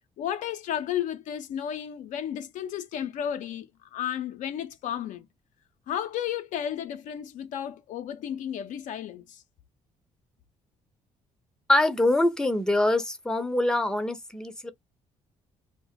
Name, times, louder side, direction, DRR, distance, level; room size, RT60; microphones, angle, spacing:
voice 1, 0.2-5.3 5.9-9.4, left 10 dB, 65° left, 0.4 m, -33 dB
voice 2, 11.7-14.7, left 1 dB, 5° left, 0.6 m, -24 dB
2.0 x 2.0 x 3.6 m
hypercardioid pair, 55°, 14 cm